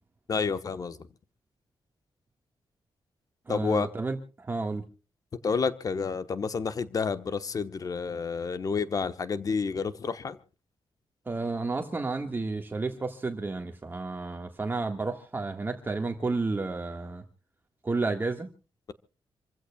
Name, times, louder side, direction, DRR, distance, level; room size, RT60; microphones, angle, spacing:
voice 1, 0.3-1.0 3.5-3.9 5.4-10.4, left 5 dB, 40° left, 1.1 m, -29 dB
voice 2, 3.5-4.8 11.2-17.2 17.8-18.5, right 3 dB, 20° right, 1.6 m, -31 dB
27.5 x 15.5 x 2.3 m
wide cardioid pair, 155°, 9 cm